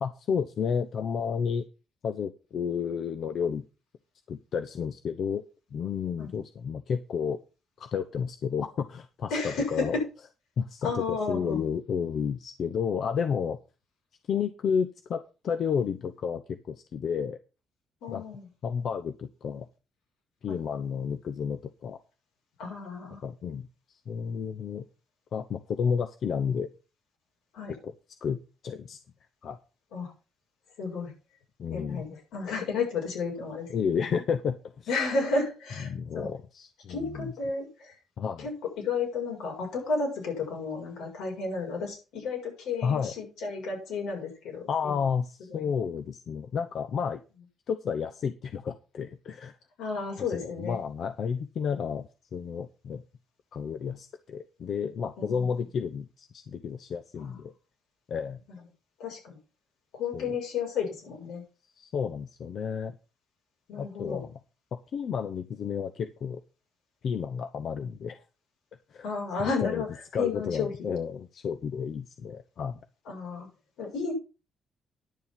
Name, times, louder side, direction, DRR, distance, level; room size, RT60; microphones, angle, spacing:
voice 1, 0.0-1.6 2.0-3.6 4.3-5.5 5.7-7.4 7.8-9.9 10.6-13.6 14.3-17.4 18.1-18.3 18.6-19.7 20.4-22.0 23.2-24.8 25.3-26.7 27.8-27.9 28.2-29.0 29.4-29.6 31.6-32.0 33.7-35.0 35.9-37.3 38.2-38.5 42.8-43.1 44.7-47.2 47.7-49.5 50.3-53.0 53.5-57.5 58.1-58.4 60.1-60.3 61.8-62.9 63.7-64.4 64.9-66.4 67.0-68.2 68.9-69.1 69.4-69.8 70.1-72.8, left 6 dB, 60° left, 10 dB, 0.8 m, -31 dB
voice 2, 9.3-10.0 10.8-11.6 18.0-18.5 20.5-20.6 22.6-23.2 27.5-27.7 29.9-30.1 30.8-31.1 31.7-33.7 34.9-36.3 36.9-37.9 38.4-38.5 38.8-45.0 45.5-45.7 49.8-50.8 55.2-55.6 57.2-57.4 59.0-59.4 59.9-61.4 63.7-64.2 69.0-69.9 70.2-70.7 73.1-73.5 73.8-74.1, left 4 dB, 85° left, 0 dB, 6.9 m, -32 dB
10.5 x 7.1 x 5.7 m, 0.32 s
cardioid pair, 90°, 0 cm